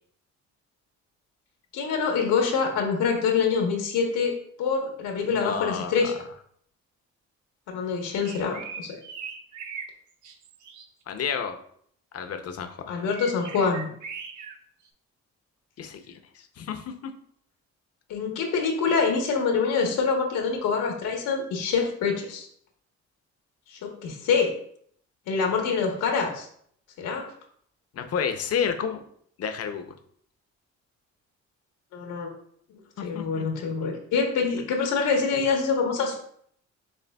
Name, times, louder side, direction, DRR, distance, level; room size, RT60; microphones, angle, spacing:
voice 1, 1.7-4.3 4.6-6.1 7.7-9.0 12.9-13.9 18.1-22.5 23.7-24.5 25.3-26.5 27.0-27.2 31.9-32.3 33.0-36.2, left 5 dB, 85° left, 2 dB, 1.0 m, -25 dB
voice 2, 5.2-6.1 11.1-11.6 12.1-12.9 15.8-17.1 27.9-29.0 29.4-29.9 33.0-33.4, left 7 dB, 55° left, 7 dB, 0.6 m, -31 dB
sound 1, 8.2-9.9 10.2-10.9 13.1-14.6, right 6 dB, 75° right, 0.6 m, -39 dB
6.7 x 3.3 x 2.2 m, 0.64 s
cardioid pair, 90°, 30 cm